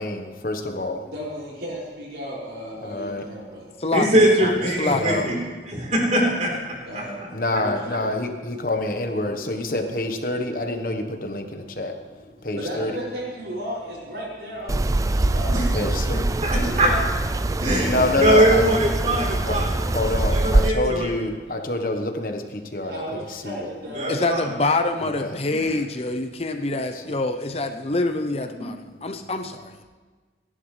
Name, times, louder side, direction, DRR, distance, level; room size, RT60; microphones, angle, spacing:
voice 1, 0.0-1.0 2.8-3.2 4.6-5.3 7.3-11.9 12.4-13.0 15.5-16.2 17.6-18.6 19.3-19.5 19.8-23.0 23.3-23.7 25.0-25.4 26.9-27.0, left 2 dB, 50° left, 5 dB, 1.2 m, -27 dB
voice 2, 0.6-3.7 6.8-8.1 12.5-16.0 16.6-17.0 22.8-24.8, equal, 65° right, -4 dB, 6.1 m, -35 dB
voice 3, 3.9-5.4 5.7-6.5 6.9-7.0 7.5-7.6 15.5-15.7 16.1-16.9 17.6-19.7 20.3-21.1 23.9-24.5 25.5-25.7, right 1 dB, 40° right, -2 dB, 3.8 m, -21 dB
sound 1, 14.7-20.7, right 2 dB, 20° right, 0.3 m, -23 dB
voice 4, 24.1-29.8, left 2 dB, 35° left, 7 dB, 0.7 m, -25 dB
29.5 x 11.0 x 3.3 m, 1.4 s
head